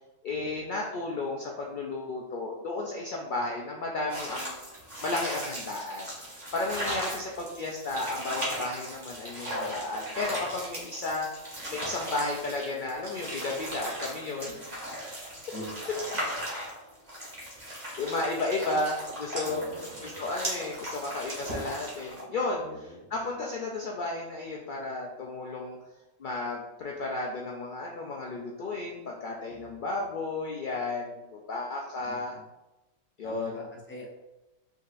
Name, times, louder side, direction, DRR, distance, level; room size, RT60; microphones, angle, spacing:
voice 1, 0.2-4.6 5.0-11.3 11.7-14.9 16.5-16.6 18.0-19.6 20.0-25.8 26.2-32.3 33.2-33.5, left 2 dB, 65° left, -2 dB, 0.5 m, -33 dB
sound 1, 4.1-22.2, equal, 30° right, 1.7 m, -37 dB
voice 2, 15.3-15.8 18.7-18.8 19.4-20.3 22.6-23.1 29.5-30.0 32.0-32.5 33.2-34.1, equal, 10° left, -3 dB, 0.7 m, -44 dB
5.3 x 3.8 x 2.5 m, 1.0 s
omnidirectional pair, 1.5 m